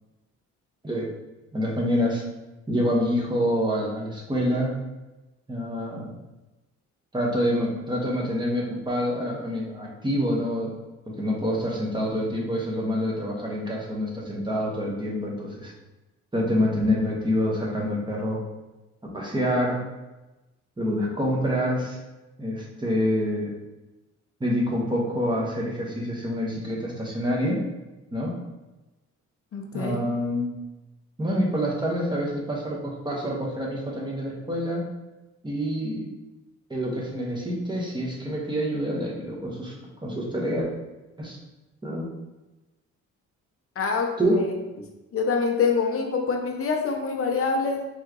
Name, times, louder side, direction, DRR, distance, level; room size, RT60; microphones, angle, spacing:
voice 1, 1.5-2.2 2.7-4.7 5.5-6.1 7.1-10.7 11.1-15.7 16.3-18.4 19.1-19.8 20.8-22.0 22.4-23.5 24.4-27.6 28.1-28.3 29.7-30.5 31.2-34.8 35.4-36.1 36.7-39.7 40.0-40.7 41.2-41.4 41.8-42.0 44.2-44.3, equal, 15° right, -3 dB, 1.4 m, -26 dB
voice 2, 29.5-30.0 43.8-44.9 45.1-47.9, left 4 dB, 45° left, 3 dB, 0.8 m, -26 dB
4.6 x 3.3 x 3.1 m, 1.1 s
cardioid pair, 90°, 30 cm